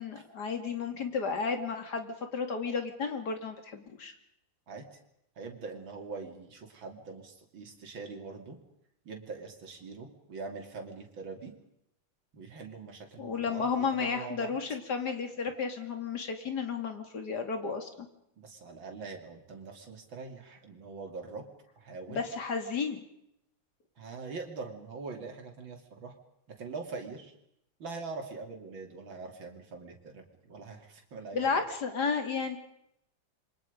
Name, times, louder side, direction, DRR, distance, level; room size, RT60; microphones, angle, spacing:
voice 1, 0.0-4.1 13.2-18.1 22.1-23.0 31.3-32.6, left 5 dB, 55° left, 6 dB, 3.1 m, -33 dB
voice 2, 5.4-8.6 9.1-11.5 12.3-14.5 18.4-21.4 21.8-22.3 24.0-26.1 26.5-27.3 27.8-31.6, right 4 dB, 85° right, 3 dB, 3.7 m, -43 dB
27.5 x 24.0 x 5.3 m, 0.77 s
omnidirectional pair, 2.1 m